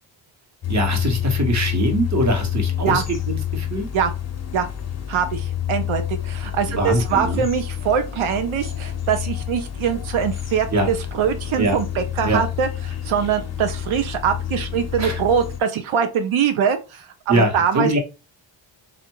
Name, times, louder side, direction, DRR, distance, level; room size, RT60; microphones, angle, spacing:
sound 1, 0.6-15.6, left 10 dB, 35° left, 0.7 m, -28 dB
voice 1, 0.7-3.9 6.7-7.4 10.7-10.9 11.6-11.8 12.2-12.4 15.0-15.2 17.3-18.0, right 1 dB, 35° right, 3 dB, 1.2 m, -22 dB
voice 2, 5.1-12.7 13.0-17.9, right 7 dB, 90° right, 7 dB, 0.8 m, -23 dB
3.5 x 2.5 x 4.5 m, 0.30 s
wide cardioid pair, 130°, 47 cm